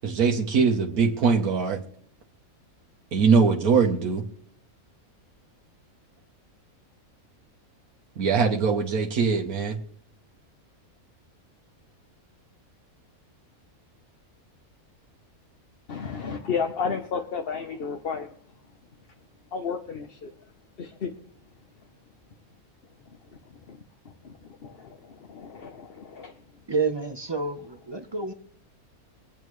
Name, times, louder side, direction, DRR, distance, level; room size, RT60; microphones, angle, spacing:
voice 1, 0.0-1.8 3.1-4.2 8.2-9.8, right 5 dB, 80° right, 1 dB, 1.5 m, -22 dB
voice 2, 15.9-18.3 19.5-20.3 20.8-21.1 23.7-23.8 24.2-26.3, left 6 dB, 45° left, 4 dB, 1.0 m, -32 dB
voice 3, 26.7-28.3, right 4 dB, 30° right, 7 dB, 0.5 m, -29 dB
24.0 x 8.7 x 3.2 m, 0.62 s
omnidirectional pair, 1.5 m